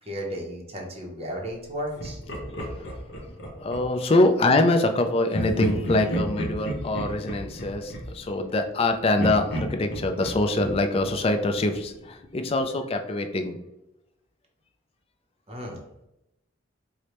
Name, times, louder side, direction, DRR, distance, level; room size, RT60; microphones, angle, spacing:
voice 1, 0.0-2.2 15.5-15.8, equal, 30° right, 0 dB, 0.6 m, -34 dB
Laughter, 2.0-4.1 5.3-8.8 9.2-11.9, equal, 55° left, 0.7 m, -33 dB
voice 2, 3.6-13.6, left 2 dB, 30° left, 6 dB, 0.3 m, -24 dB
4.8 x 2.1 x 2.9 m, 0.90 s
head